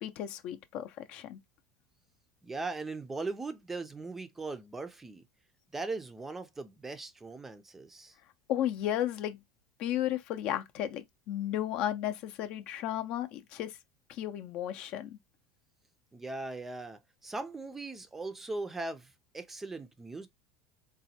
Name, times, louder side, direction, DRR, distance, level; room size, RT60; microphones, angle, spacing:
voice 1, 0.0-1.4 8.5-9.4 9.8-13.8 14.1-15.2, left 11 dB, 55° left, 0.5 m, -34 dB
voice 2, 2.4-5.2 5.7-8.1 16.1-20.3, right 3 dB, 10° right, 0.4 m, -39 dB
4.0 x 2.2 x 2.7 m
supercardioid pair, 130°, 2 cm